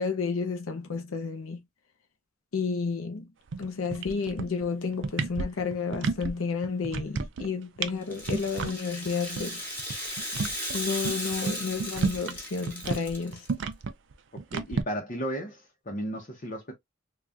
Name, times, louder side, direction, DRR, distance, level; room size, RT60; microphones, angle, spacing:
voice 1, 0.0-1.6 2.5-3.3 3.6-9.6 10.7-13.5, left 5 dB, 85° left, 0.6 m, -31 dB
sound 1, 3.5-3.6 3.9-4.6 4.9-6.3 6.6-7.5 7.8-7.9 8.2-8.7 9.1-9.2 9.4-9.5 9.8-12.4 12.7-14.8, right 4 dB, 65° right, 0.5 m, -31 dB
Rattle (instrument), 8.0-13.5, equal, 10° left, 1.3 m, -36 dB
voice 2, 14.3-16.7, equal, 40° left, 0.8 m, -35 dB
3.5 x 2.3 x 2.6 m
head